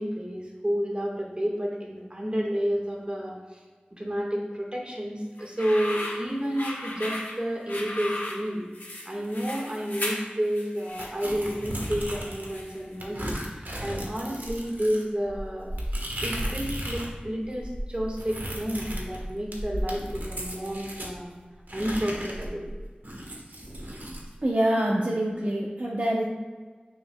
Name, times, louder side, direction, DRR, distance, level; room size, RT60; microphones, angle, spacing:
voice 1, 0.0-3.6 3.9-8.7 9.0-15.7 16.2-21.3 21.7-22.7, equal, 35° right, -2 dB, 1.6 m, -30 dB
sound 1, 5.4-12.9, left 1 dB, 90° left, 1.3 m, -37 dB
sound 2, 11.0-12.6 13.0-17.1 17.4-21.1 21.7-24.2, equal, 75° right, 1.4 m, -35 dB
voice 2, 24.4-26.2, right 1 dB, 50° right, -3 dB, 0.9 m, -25 dB
6.7 x 6.5 x 2.3 m, 1.5 s
wide cardioid pair, 45°, 3 cm